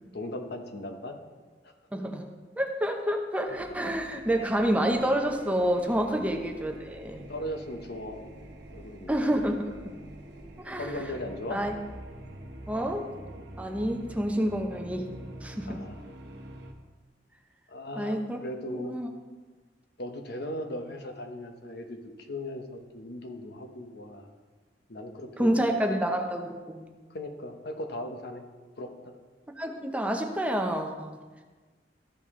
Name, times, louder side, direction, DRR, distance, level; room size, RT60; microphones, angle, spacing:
voice 1, 0.1-1.2 1.6-1.7 7.3-8.3 8.7-9.1 10.7-11.6 15.7-16.0 17.7-18.9 20.0-22.0 22.3-24.3 24.9-26.0 27.1-28.4 28.8-29.1, left 1 dB, 65° left, 5 dB, 1.0 m, -38 dB
voice 2, 1.9-2.3 2.6-7.3 9.1-9.7 10.6-10.9 11.5-11.7 12.7-13.1 13.6-15.1 15.4-15.8 18.0-18.4 18.7-19.1 25.4-26.9 29.6-31.2, equal, 10° right, 3 dB, 0.7 m, -28 dB
sound 1, 3.4-16.7, right 1 dB, 70° right, 1.0 m, -46 dB
14.0 x 5.2 x 3.7 m, 1.4 s
head